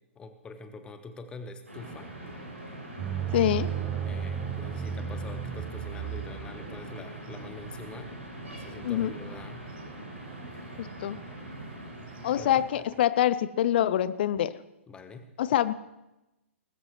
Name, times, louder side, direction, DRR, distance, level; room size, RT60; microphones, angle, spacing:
voice 1, 0.1-2.1 4.0-8.1 8.5-9.7 12.3-12.6 14.9-15.3, left 4 dB, 15° left, 8 dB, 1.2 m, -45 dB
sound 1, 1.7-12.6, right 1 dB, 85° right, 6.6 m, -42 dB
sound 2, 3.0-9.8 10.4-10.9 11.2-11.3 11.7-13.0, right 9 dB, 20° right, 0.6 m, -35 dB
voice 2, 3.3-3.7 8.8-9.1 10.8-11.2 12.2-14.5 15.4-15.7, left 11 dB, 50° left, 16 dB, 0.5 m, -25 dB
20.0 x 14.5 x 3.2 m, 0.96 s
figure-of-eight pair, 115°, 7 cm